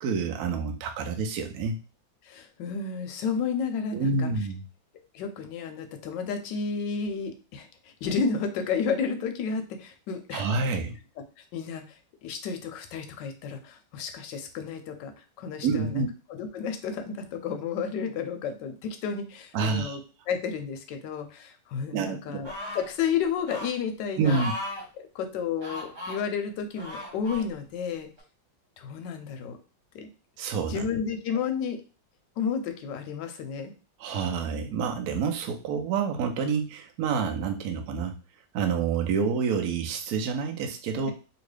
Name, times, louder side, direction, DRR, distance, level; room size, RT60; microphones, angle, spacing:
voice 1, 0.0-1.8 3.9-4.6 10.3-11.0 15.6-16.1 19.5-20.0 21.9-22.4 24.2-24.5 30.4-30.9 34.0-38.1 38.5-41.1, right 5 dB, 70° right, 4 dB, 0.9 m, -28 dB
voice 2, 2.3-4.3 5.1-10.8 11.5-12.0 12.2-15.1 15.4-16.0 16.4-20.0 20.3-24.4 25.0-28.1 28.8-29.6 29.9-30.1 30.7-31.8 32.4-33.7 41.0-41.1, left 6 dB, 75° left, 6 dB, 1.2 m, -32 dB
sound 1, 22.4-22.9 23.5-23.7 24.2-24.8 25.6-26.2 26.8-27.4 28.2-28.3, left 1 dB, 40° right, 1.3 m, -36 dB
2.9 x 2.7 x 3.2 m, 0.33 s
omnidirectional pair, 2.1 m